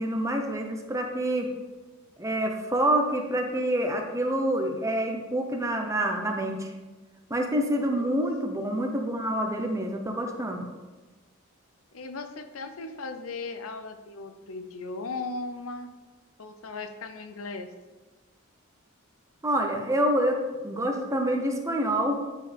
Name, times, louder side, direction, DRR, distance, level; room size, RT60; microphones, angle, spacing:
voice 1, 0.0-1.5 2.2-6.7 7.3-10.6 19.4-22.2, right 1 dB, 15° right, 3 dB, 0.8 m, -27 dB
voice 2, 7.8-8.2 11.9-15.9 16.4-17.7, left 3 dB, 75° left, 8 dB, 0.7 m, -37 dB
9.6 x 4.6 x 3.4 m, 1.3 s
head